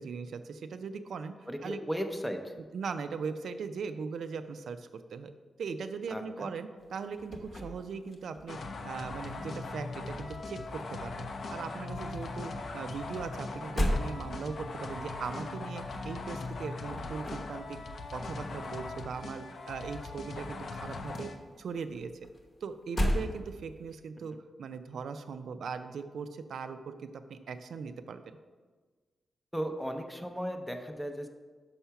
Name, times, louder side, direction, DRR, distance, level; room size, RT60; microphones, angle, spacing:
voice 1, 0.0-1.8 2.7-5.3 5.6-17.8 18.1-21.3 21.6-22.1 22.6-28.4, right 5 dB, 75° right, 9 dB, 0.4 m, -39 dB
voice 2, 1.5-2.5 6.1-6.5 29.5-31.3, equal, ahead, 5 dB, 0.5 m, -36 dB
sound 1, 6.8-8.8 9.1-11.0 11.3-20.0 20.2-24.0, equal, 30° left, 0.9 m, -37 dB
sound 2, 8.5-21.4, left 3 dB, 55° left, 0.6 m, -40 dB
5.6 x 5.6 x 5.7 m, 1.4 s
wide cardioid pair, 175°, 0 cm